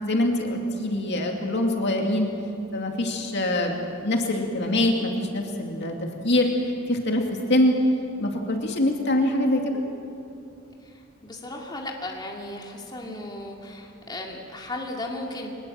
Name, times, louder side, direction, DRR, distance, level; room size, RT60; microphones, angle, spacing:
voice 1, 0.0-2.3 2.7-3.8 4.0-6.5 6.9-7.2 7.5-7.8 8.2-9.8, left 1 dB, 55° left, 2 dB, 2.5 m, -24 dB
voice 2, 11.2-15.5, left 1 dB, 20° left, -1 dB, 2.4 m, -35 dB
23.5 x 20.5 x 7.7 m, 2.8 s
head